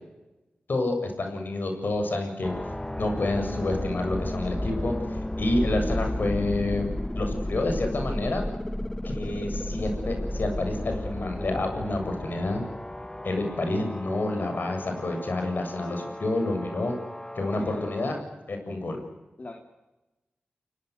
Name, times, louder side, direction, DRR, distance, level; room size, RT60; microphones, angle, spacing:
voice 1, 0.7-2.5 3.0-6.9 7.1-8.5 9.0-12.7 13.2-16.9 17.4-18.2 18.5-19.0, left 2 dB, 65° left, 5 dB, 7.4 m, -28 dB
sound 1, 2.4-18.2, left 1 dB, 15° left, 1.1 m, -33 dB
voice 2, 17.5-17.9 19.4-19.5, left 2 dB, 45° left, 2 dB, 3.5 m, -39 dB
29.5 x 19.0 x 8.2 m, 1.1 s
cardioid pair, 45°, 4 cm